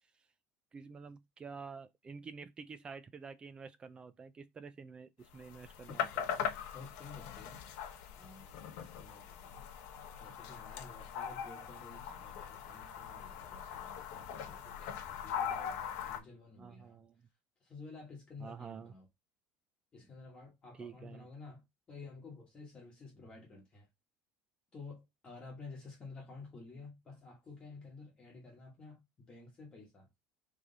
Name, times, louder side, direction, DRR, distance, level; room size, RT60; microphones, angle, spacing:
voice 1, 0.7-6.3 12.0-12.2 16.6-17.2 18.4-18.9 20.7-21.3, right 5 dB, 20° right, 0.3 m, -49 dB
sound 1, 5.3-16.2, left 8 dB, 65° left, 0.9 m, -41 dB
voice 2, 6.7-7.6 8.1-9.6 10.2-17.0 17.6-19.1 19.9-21.6 21.9-23.9 24.7-30.1, left 3 dB, 20° left, 1.3 m, -52 dB
3.7 x 3.2 x 3.9 m
cardioid pair, 165°, 5 cm